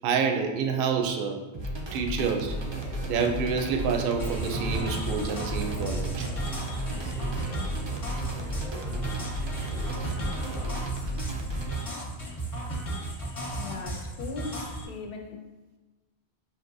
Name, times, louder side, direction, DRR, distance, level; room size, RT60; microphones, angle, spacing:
voice 1, 0.0-1.4 1.9-2.6 3.1-6.3, right 5 dB, 65° right, 4 dB, 0.7 m, -28 dB
sound 1, 1.5-11.8, right 1 dB, 45° right, 0.3 m, -34 dB
sound 2, 2.4-10.9, equal, 10° right, 0.6 m, -45 dB
sound 3, 4.2-14.9, right 1 dB, 40° left, 0.7 m, -35 dB
voice 2, 13.5-15.5, left 4 dB, 70° left, 4 dB, 0.7 m, -39 dB
5.7 x 2.7 x 2.6 m, 1.2 s
omnidirectional pair, 1.0 m